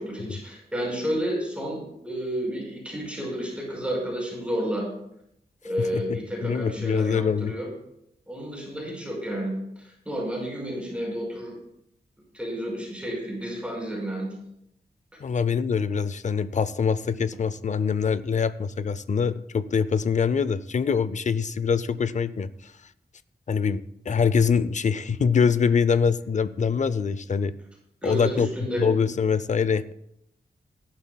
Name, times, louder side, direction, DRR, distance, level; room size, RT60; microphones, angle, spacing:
voice 1, 0.0-4.9 5.6-7.7 8.3-11.5 12.3-14.3 28.0-28.9, equal, 5° right, -3 dB, 5.0 m, -31 dB
voice 2, 5.8-7.5 15.2-22.5 23.5-27.5 28.0-28.5 28.8-29.9, left 6 dB, 45° left, 16 dB, 0.5 m, -24 dB
17.0 x 11.5 x 2.3 m, 0.77 s
cardioid pair, 80°, 17 cm